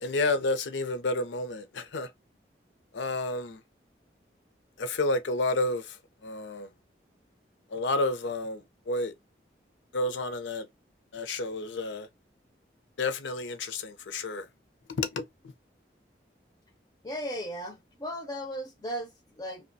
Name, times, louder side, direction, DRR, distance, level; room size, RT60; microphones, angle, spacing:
voice 1, 0.0-2.1 2.9-3.6 4.8-5.9 6.2-6.7 7.7-9.1 9.9-10.7 11.1-12.1 13.0-14.5 15.0-15.2, left 2 dB, 90° left, 0.5 m, -30 dB
voice 2, 17.0-17.7 18.0-19.1 19.4-19.6, equal, 20° left, 0.4 m, -35 dB
2.8 x 2.1 x 2.6 m
head